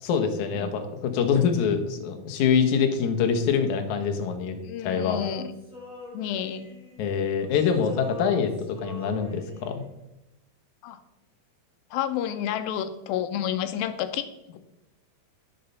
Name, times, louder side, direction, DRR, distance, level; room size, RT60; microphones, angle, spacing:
voice 1, 0.0-5.2 7.0-9.8, left 6 dB, 65° left, 6 dB, 2.2 m, -25 dB
voice 2, 4.6-5.5 6.1-6.7 7.4-7.8 10.8-11.0 11.9-14.3 14.5-14.6, left 10 dB, 85° left, 11 dB, 2.5 m, -30 dB
Male singing, 5.0-7.4 7.7-9.9, equal, ahead, 3.1 m, -44 dB
9.2 x 6.8 x 5.5 m, 0.92 s
omnidirectional pair, 4.2 m